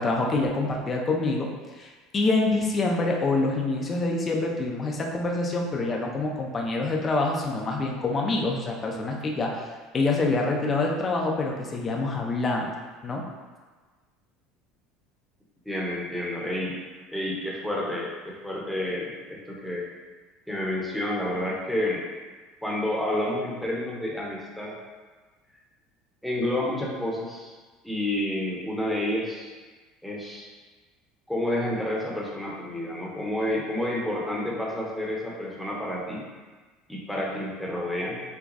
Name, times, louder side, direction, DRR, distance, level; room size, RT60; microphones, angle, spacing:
voice 1, 0.0-1.5 1.7-9.7 9.9-12.7 13.0-13.2, left 3 dB, 25° left, 0 dB, 0.7 m, -26 dB
voice 2, 15.7-16.8 17.1-19.9 20.5-22.0 22.6-24.7 26.2-27.5 27.8-29.5 30.0-30.5 31.3-36.2 36.9-38.2, left 1 dB, ahead, -4 dB, 0.9 m, -29 dB
5.9 x 2.2 x 4.0 m, 1.4 s
cardioid pair, 135°, 0 cm